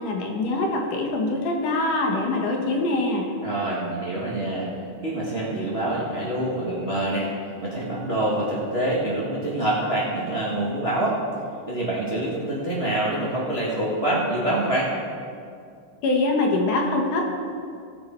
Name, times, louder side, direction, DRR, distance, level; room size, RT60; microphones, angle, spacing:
voice 1, 0.0-3.3 16.0-17.2, left 2 dB, 75° left, 0 dB, 2.8 m, -24 dB
voice 2, 3.4-4.7 5.0-7.3 7.6-11.2 11.7-14.9, right 1 dB, 35° right, -6 dB, 1.0 m, -26 dB
18.5 x 6.7 x 4.4 m, 2.3 s
omnidirectional pair, 3.8 m